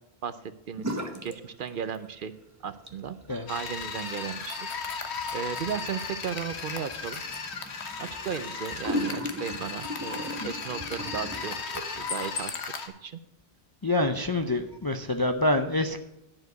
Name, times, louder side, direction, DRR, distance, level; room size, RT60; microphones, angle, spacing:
voice 1, 0.2-1.0 1.2-2.3 2.6-3.2 3.5-4.7 5.3-7.2 8.0-12.5 13.0-13.2, right 7 dB, 60° right, 12 dB, 0.7 m, -35 dB
sound 1, 0.8-1.4 1.7-2.3 2.7-12.2, equal, 15° right, 0.8 m, -38 dB
sound 2, 3.5-12.9, left 5 dB, 85° left, 1.3 m, -36 dB
voice 2, 13.8-16.0, left 2 dB, 30° left, 6 dB, 0.4 m, -26 dB
10.5 x 4.8 x 7.9 m, 0.84 s
omnidirectional pair, 1.1 m